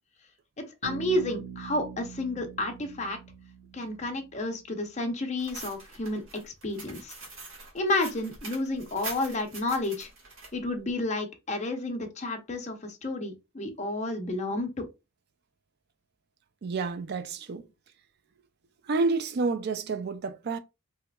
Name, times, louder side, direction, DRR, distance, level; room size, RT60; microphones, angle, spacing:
voice 1, 0.6-3.2 3.7-7.1 7.7-10.1 10.5-14.9, left 2 dB, 35° left, 0.6 m, -31 dB
Bass guitar, 0.8-4.5, right 7 dB, 90° right, 0.7 m, -43 dB
sound 1, 5.4-10.5, right 3 dB, 75° right, 1.3 m, -43 dB
voice 2, 16.6-17.6 18.9-20.6, right 4 dB, 50° right, 0.4 m, -29 dB
3.3 x 2.9 x 2.2 m
head